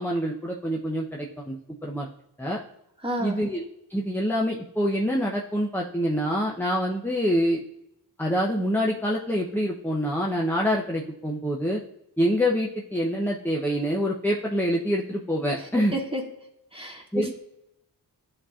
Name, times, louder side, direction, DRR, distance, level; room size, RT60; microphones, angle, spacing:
voice 1, 0.0-1.6 1.8-2.1 2.4-2.6 3.2-3.6 3.9-7.6 8.2-11.8 12.2-15.9 17.1-17.3, equal, 5° left, -1 dB, 0.8 m, -26 dB
voice 2, 3.0-3.4 15.9-16.2 16.7-17.3, equal, 15° right, -2 dB, 2.0 m, -30 dB
11.0 x 4.2 x 2.5 m, 0.81 s
cardioid pair, 45°, 41 cm